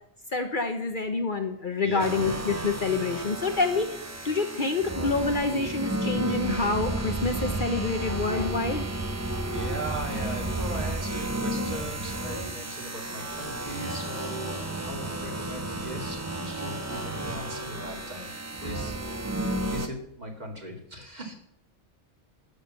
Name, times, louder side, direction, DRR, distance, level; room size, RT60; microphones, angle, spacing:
voice 1, 0.3-8.9, left 3 dB, 45° left, 6 dB, 1.0 m, -27 dB
sound 1, 2.0-19.9, right 2 dB, 15° right, 0.7 m, -32 dB
voice 2, 9.5-18.3 18.6-19.3 19.7-21.3, right 1 dB, 35° right, 1 dB, 2.5 m, -39 dB
12.5 x 6.4 x 7.6 m, 0.75 s
omnidirectional pair, 1.2 m